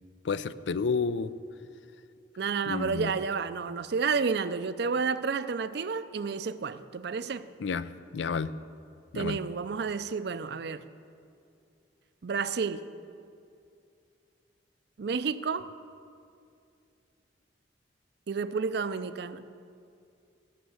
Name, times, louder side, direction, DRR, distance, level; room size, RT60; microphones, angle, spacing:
voice 1, 0.2-1.3 2.6-3.1 7.6-8.5 9.1-9.4, left 5 dB, 75° left, 15 dB, 0.5 m, -31 dB
voice 2, 2.4-7.5 9.1-10.8 12.2-12.8 15.0-15.7 18.3-19.4, right 5 dB, 65° right, 13 dB, 0.5 m, -30 dB
14.5 x 6.5 x 7.9 m, 2.4 s
head